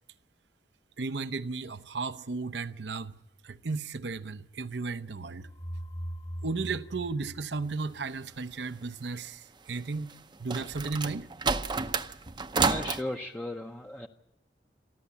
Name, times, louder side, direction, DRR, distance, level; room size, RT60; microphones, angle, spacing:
voice 1, 1.0-3.2 3.4-5.5 6.4-11.3, right 4 dB, 75° right, 0.8 m, -34 dB
sound 1, 5.4-8.3, equal, 35° left, 1.5 m, -40 dB
sound 2, 10.1-13.0, right 4 dB, 25° right, 0.7 m, -30 dB
voice 2, 12.6-14.1, left 1 dB, 10° left, 0.7 m, -36 dB
28.5 x 11.5 x 8.4 m
head